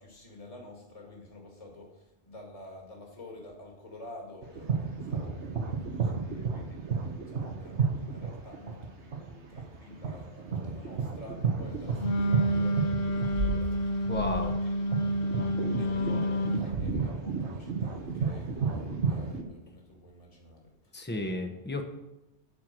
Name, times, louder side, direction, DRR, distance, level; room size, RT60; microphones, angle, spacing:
voice 1, 0.0-14.1 14.6-21.0, left 2 dB, 30° left, 0 dB, 2.0 m, -49 dB
sound 1, 4.4-19.4, right 5 dB, 80° right, 1.4 m, -32 dB
Wind instrument woodwind instrument, 12.0-16.7, equal, 60° left, 1.0 m, -29 dB
voice 2, 14.1-14.6 20.9-21.8, left 2 dB, 10° left, 5 dB, 0.9 m, -33 dB
10.0 x 4.6 x 7.5 m, 0.93 s
omnidirectional pair, 1.2 m